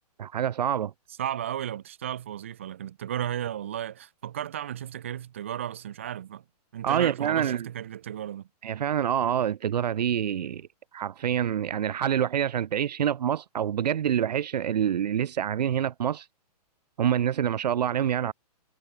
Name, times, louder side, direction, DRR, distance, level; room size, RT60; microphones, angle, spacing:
voice 1, 0.2-0.9 6.8-7.7 8.6-10.7 10.9-16.3 17.0-18.3, right 9 dB, 85° right, 0.6 m, -26 dB
voice 2, 1.2-6.4 6.7-8.5, right 10 dB, 20° right, 0.4 m, -34 dB
hypercardioid pair, 175°, 21 cm